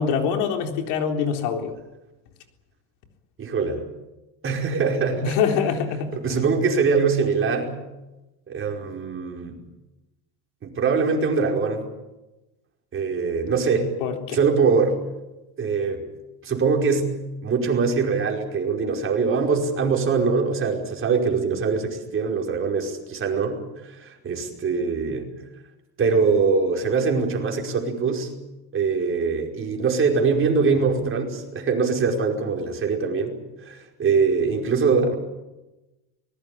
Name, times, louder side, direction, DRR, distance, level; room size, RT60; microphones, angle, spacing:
voice 1, 0.0-1.7 5.2-6.4 14.0-14.4, left 6 dB, 85° left, 4 dB, 3.9 m, -24 dB
voice 2, 3.4-3.8 4.4-5.4 6.1-7.8 8.5-9.6 10.6-11.9 12.9-13.9 14.3-15.0 15.6-16.1 16.4-17.2 17.4-25.3 26.0-28.3 28.7-35.2, right 5 dB, 30° right, 1 dB, 5.1 m, -23 dB
24.5 x 20.5 x 8.6 m, 1.0 s
cardioid pair, 140°, 39 cm